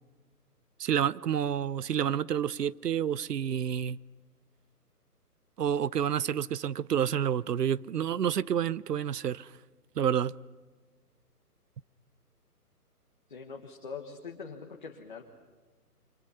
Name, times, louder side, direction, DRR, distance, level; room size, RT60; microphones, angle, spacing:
voice 1, 0.8-4.0 5.6-9.5 10.0-10.3, right 9 dB, 85° right, 0.7 m, -29 dB
voice 2, 13.3-15.2, left 5 dB, 30° left, 1.4 m, -43 dB
29.0 x 25.5 x 5.6 m
hypercardioid pair, 180°, 47 cm